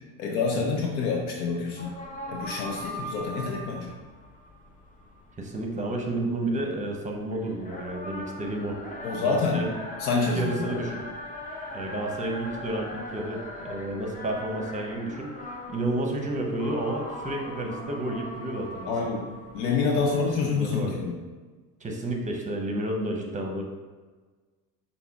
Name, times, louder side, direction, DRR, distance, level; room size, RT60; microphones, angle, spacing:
voice 1, 0.2-1.9 2.3-3.9 9.0-9.7 10.0-10.8 18.9-21.2, left 4 dB, 75° left, 0 dB, 0.7 m, -27 dB
sound 1, 1.8-20.4, left 1 dB, 20° left, 0.6 m, -40 dB
voice 2, 5.4-8.8 9.2-9.7 10.1-11.0 11.7-18.9 19.9-20.0 20.6-20.9 21.8-23.6, right 1 dB, 15° right, 1 dB, 0.8 m, -31 dB
5.7 x 2.0 x 3.5 m, 1.3 s
hypercardioid pair, 70°, 45 cm